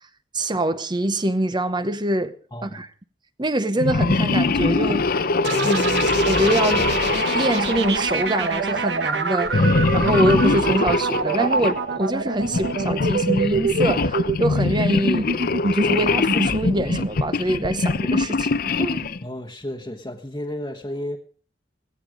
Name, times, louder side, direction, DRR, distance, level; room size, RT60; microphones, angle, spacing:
voice 1, 0.3-2.3 2.6-2.9 3.4-5.3 5.6-6.9 7.3-19.0, right 1 dB, 25° right, 0.8 m, -25 dB
voice 2, 2.5-2.9 12.5-12.7 19.2-21.2, left 1 dB, 20° left, 1.2 m, -33 dB
sound 1, 3.8-8.6 9.5-11.8 12.4-19.2, left 3 dB, 55° left, 0.7 m, -23 dB
sound 2, 5.4-19.1, right 4 dB, 75° right, 1.4 m, -26 dB
16.5 x 15.0 x 5.0 m
head